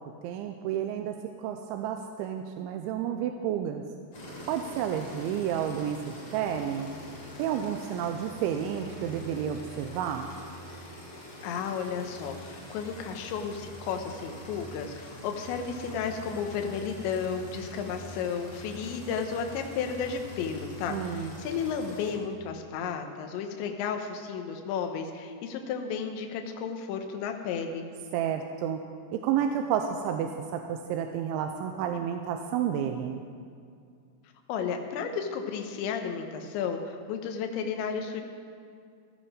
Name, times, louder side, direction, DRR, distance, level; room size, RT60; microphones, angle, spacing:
voice 1, 0.2-3.8 4.5-6.9 7.4-10.3 20.9-21.3 28.1-28.8 29.1-33.2, right 9 dB, 90° right, 5 dB, 3.0 m, -31 dB
sound 1, 4.1-22.1, equal, 30° left, 3.7 m, -44 dB
voice 2, 11.4-27.8 34.5-38.2, left 6 dB, 75° left, 5 dB, 3.3 m, -33 dB
15.0 x 14.0 x 5.0 m, 2.3 s
omnidirectional pair, 5.3 m